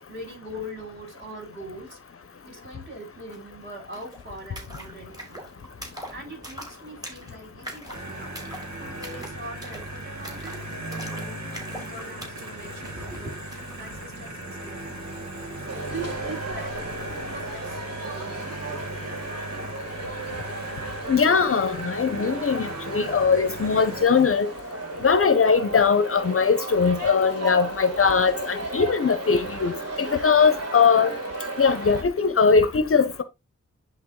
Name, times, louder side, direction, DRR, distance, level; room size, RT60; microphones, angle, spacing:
voice 1, 0.1-2.0 2.4-5.4 6.1-8.3 8.8-11.4 11.7-13.4 13.8-15.2 15.9-18.6, right 1 dB, 35° right, 5.5 m, -41 dB
sound 1, 3.3-3.4 3.6-13.8, equal, 15° right, 3.1 m, -43 dB
sound 2, 7.9-24.0, right 2 dB, 75° right, 2.0 m, -37 dB
sound 3, 15.7-32.0, right 2 dB, 55° right, 3.2 m, -35 dB
voice 2, 21.1-24.5 25.0-31.1 31.6-33.2, left 5 dB, 50° left, 0.8 m, -20 dB
10.5 x 3.6 x 3.7 m
wide cardioid pair, 100°, 29 cm